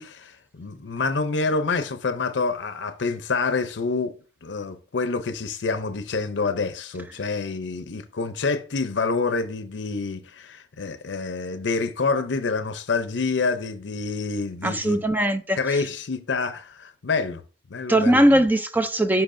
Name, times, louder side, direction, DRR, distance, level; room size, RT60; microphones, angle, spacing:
voice 1, 0.0-15.1 15.6-17.4 17.7-18.5, left 4 dB, 90° left, 0.6 m, -27 dB
voice 2, 14.6-15.6 17.9-19.2, right 1 dB, 10° right, 0.4 m, -20 dB
10.5 x 6.0 x 2.6 m
head